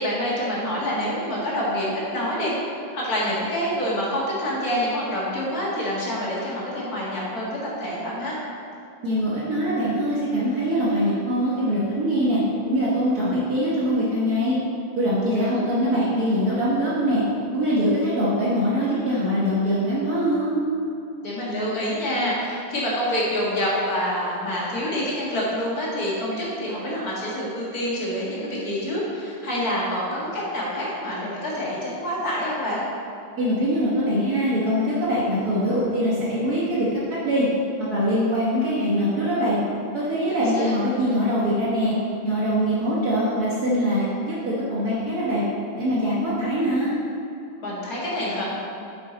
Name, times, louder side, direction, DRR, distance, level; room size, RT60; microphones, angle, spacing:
voice 1, 0.0-2.5 2.9-8.4 15.2-15.7 21.2-32.8 40.3-40.7 47.6-48.4, equal, 50° left, -6 dB, 2.4 m, -27 dB
voice 2, 9.0-12.4 12.7-14.6 15.0-17.2 17.5-20.6 33.4-37.5 37.9-39.6 39.9-41.9 42.2-45.4 45.8-46.9, equal, 55° right, -8 dB, 1.7 m, -23 dB
8.5 x 6.0 x 4.0 m, 2.7 s
omnidirectional pair, 2.1 m